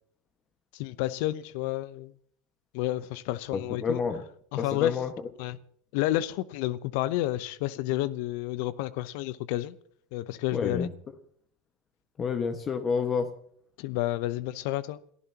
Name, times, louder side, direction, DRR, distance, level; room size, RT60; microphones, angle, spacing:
voice 1, 0.7-2.1 2.7-4.0 4.5-5.0 5.4-5.6 5.9-9.8 10.1-10.9 13.8-15.0, left 15 dB, 65° left, 0.7 m, -30 dB
voice 2, 3.5-4.2 4.6-5.1 10.5-10.9 12.2-13.3, left 5 dB, 30° left, 1.5 m, -29 dB
29.0 x 15.0 x 2.9 m
hypercardioid pair, 90°, 0 cm